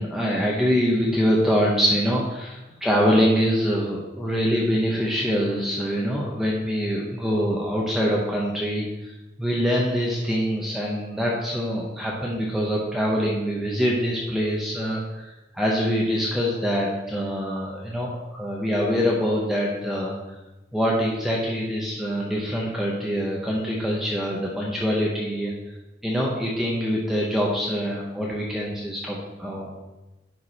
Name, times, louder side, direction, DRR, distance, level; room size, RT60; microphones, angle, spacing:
voice 1, 0.0-20.1 20.7-25.5 26.0-29.7, equal, ahead, -4 dB, 1.0 m, -24 dB
11.0 x 4.7 x 4.2 m, 1.1 s
head